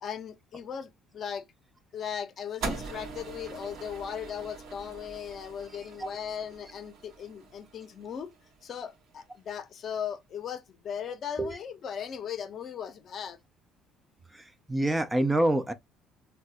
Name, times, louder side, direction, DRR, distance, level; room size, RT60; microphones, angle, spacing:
voice 1, 0.0-1.4 1.9-8.3 8.6-13.4, left 8 dB, 50° left, 0.6 m, -38 dB
sound 1, 2.6-8.9, right 3 dB, 70° right, 1.0 m, -42 dB
voice 2, 14.3-15.7, right 1 dB, 10° right, 0.4 m, -27 dB
3.2 x 2.2 x 2.7 m
cardioid pair, 100°, 0 cm